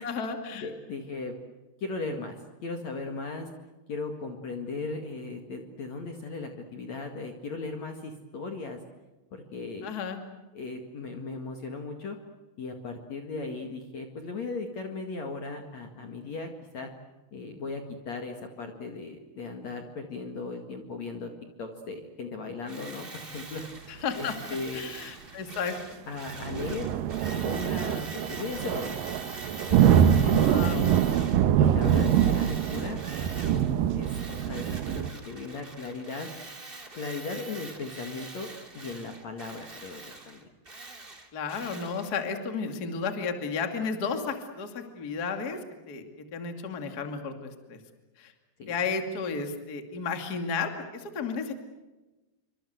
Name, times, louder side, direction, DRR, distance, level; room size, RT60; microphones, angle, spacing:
voice 1, 0.0-0.7 9.8-10.2 23.9-25.8 30.4-30.9 41.3-45.6 45.9-47.8 48.2-48.3 48.7-51.5, left 5 dB, 30° left, 6 dB, 2.2 m, -33 dB
voice 2, 0.5-1.4 1.8-2.4 2.6-3.5 3.9-8.8 9.3-9.9 10.5-12.2 12.6-16.5 16.7-16.9 17.3-21.3 21.6-24.9 26.1-26.9 27.3-29.0 29.7-30.9 31.6-33.0 33.9-36.3 36.9-38.5 38.7-40.4 48.6-48.8, left 3 dB, 50° left, 4 dB, 2.7 m, -37 dB
Tools, 22.7-31.4 31.8-33.7 34.0-42.1, right 2 dB, 15° right, 2.1 m, -44 dB
sound 1, 26.4-35.1, right 9 dB, 70° right, 2.4 m, -24 dB
28.0 x 25.5 x 8.0 m, 1.1 s
omnidirectional pair, 5.0 m